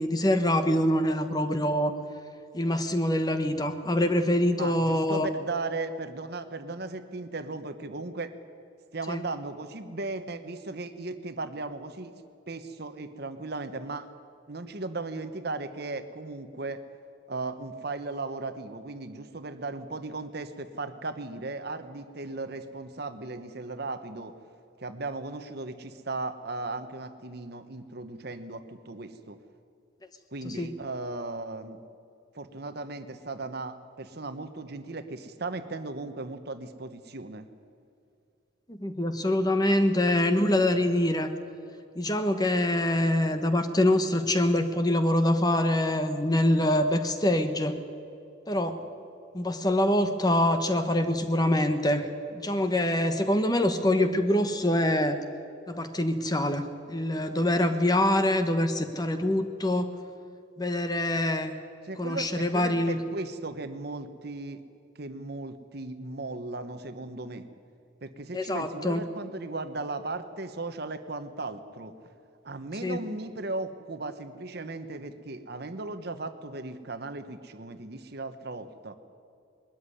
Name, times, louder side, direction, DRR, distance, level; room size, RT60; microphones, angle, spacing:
voice 1, 0.0-1.9 2.5-5.3 9.1-9.2 30.4-30.7 38.7-41.3 42.0-47.8 48.5-48.8 49.3-55.2 55.7-59.9 60.6-61.5 62.0-63.0 68.3-69.0 72.8-73.0, left 1 dB, 20° left, 8 dB, 1.1 m, -25 dB
voice 2, 4.6-8.3 8.9-12.1 12.5-14.1 14.5-16.8 17.3-24.3 24.8-29.4 30.3-31.8 32.3-37.5 61.8-64.6 65.0-67.5 68.0-71.9 72.4-78.9, right 3 dB, 55° right, 10 dB, 1.0 m, -36 dB
21.0 x 13.5 x 9.9 m, 2.4 s
head